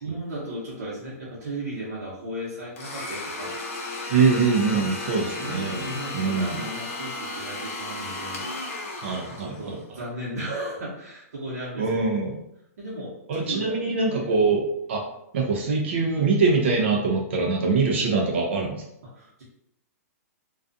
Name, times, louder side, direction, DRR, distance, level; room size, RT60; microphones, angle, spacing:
voice 1, 0.0-3.6 4.7-8.5 9.3-11.9 12.8-13.8 14.1-14.2 19.0-19.4, right 1 dB, 75° right, -7 dB, 0.9 m, -35 dB
Domestic sounds home sounds, 2.8-9.8, left 2 dB, 50° left, 0.6 m, -34 dB
voice 2, 4.1-5.9 6.1-6.6 9.0-9.8 11.8-12.4 13.3-14.6 14.9-15.0 15.3-18.8, right 4 dB, 45° right, 0 dB, 0.5 m, -23 dB
2.3 x 2.3 x 2.5 m, 0.79 s
hypercardioid pair, 175°, 9 cm